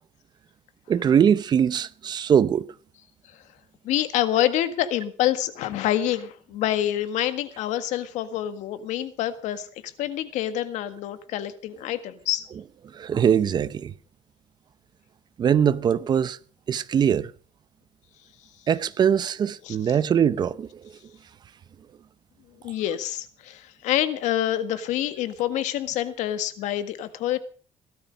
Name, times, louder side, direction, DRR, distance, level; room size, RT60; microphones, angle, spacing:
voice 1, 0.9-2.7 12.8-13.9 15.4-16.4 16.7-17.3 18.7-20.9, right 8 dB, 35° right, 0.8 m, -22 dB
voice 2, 3.8-12.5 19.6-19.8 22.6-27.4, left 12 dB, 80° left, 1.7 m, -27 dB
17.5 x 12.5 x 5.2 m
cardioid pair, 150°, 12 cm